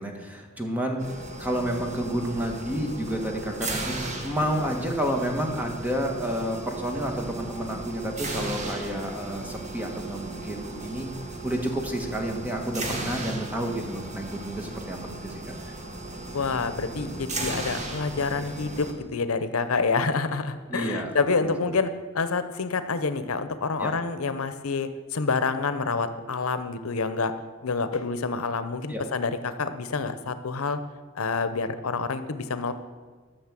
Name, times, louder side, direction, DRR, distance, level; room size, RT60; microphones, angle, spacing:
voice 1, 0.0-11.1 11.4-15.7 20.7-21.8 23.8-23.9 28.9-29.0, equal, 10° right, 2 dB, 1.6 m, -30 dB
sound 1, 1.0-18.9, right 2 dB, 35° right, 1.5 m, -36 dB
voice 2, 16.3-21.9 22.1-27.3 27.6-30.8 31.1-32.7, left 4 dB, 85° left, 11 dB, 0.8 m, -27 dB
13.0 x 6.5 x 7.5 m, 1.5 s
head